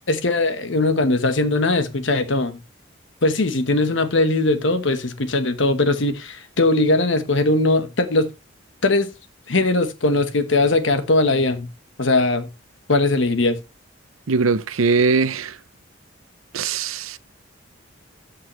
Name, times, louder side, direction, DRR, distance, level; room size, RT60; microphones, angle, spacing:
voice 1, 0.1-2.6 3.2-8.3 8.8-9.1 9.5-11.7 12.0-12.5 12.9-13.6, left 2 dB, 65° left, 1.2 m, -20 dB
voice 2, 14.3-15.6 16.5-17.2, right 4 dB, 90° right, 0.6 m, -20 dB
14.0 x 5.4 x 3.1 m
head